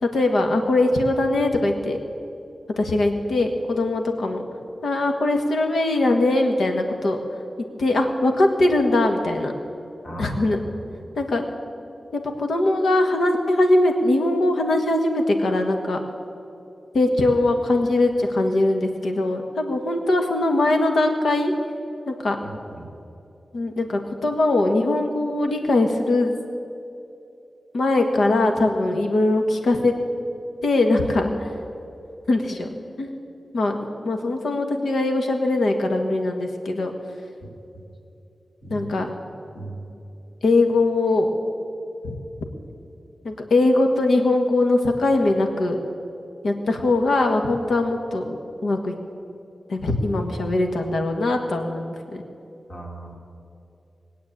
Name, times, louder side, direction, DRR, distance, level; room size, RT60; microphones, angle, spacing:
voice 1, 0.0-2.0 2.8-4.4 4.8-7.2 7.8-9.5 10.2-10.6 11.1-11.4 12.1-16.0 16.9-21.5 22.1-22.4 23.5-26.4 27.7-29.9 30.6-31.5 32.3-32.7 33.0-33.2 33.5-36.9 38.7-39.1 40.4-41.3 42.0-42.1 43.2-45.8 46.4-48.4 48.6-48.9 49.7-52.2, left 2 dB, 90° left, 4 dB, 1.6 m, -21 dB
voice 2, 10.0-10.6 22.4-22.9 38.6-39.0 39.5-39.8 52.7-53.2, right 2 dB, 60° left, -2 dB, 3.0 m, -37 dB
20.0 x 8.5 x 8.6 m, 2.7 s
wide cardioid pair, 135°, 0 cm